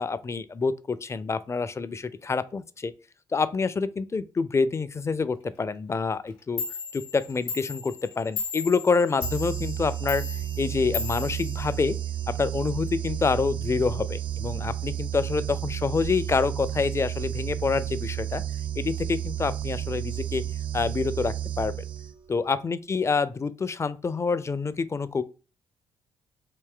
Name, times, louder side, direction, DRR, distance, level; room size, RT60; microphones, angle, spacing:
voice 1, 0.0-2.9 3.3-6.6 6.9-10.2 10.6-12.0 12.4-18.4 18.8-20.4 20.7-21.7 22.3-25.2, left 4 dB, 25° left, 0.4 m, -27 dB
Clock, 6.3-6.4 6.6-12.2, left 5 dB, 85° left, 0.9 m, -36 dB
sound 1, 9.2-22.3, right 11 dB, 45° right, 0.5 m, -32 dB
3.3 x 2.7 x 3.7 m
hypercardioid pair, 50°, 11 cm